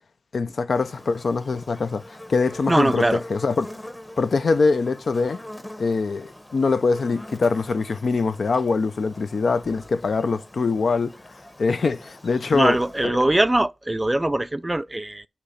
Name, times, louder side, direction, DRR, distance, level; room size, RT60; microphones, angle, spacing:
voice 1, 0.3-2.0 2.3-3.7 4.2-5.4 5.8-11.2 11.6-12.8 13.0-13.2, left 4 dB, 80° left, 0.6 m, -23 dB
Buzz, 0.7-13.0, left 1 dB, 15° left, 1.0 m, -43 dB
voice 2, 2.7-3.2 12.5-15.3, right 1 dB, 20° right, 0.4 m, -21 dB
8.4 x 3.0 x 5.6 m
wide cardioid pair, 80°, 0 cm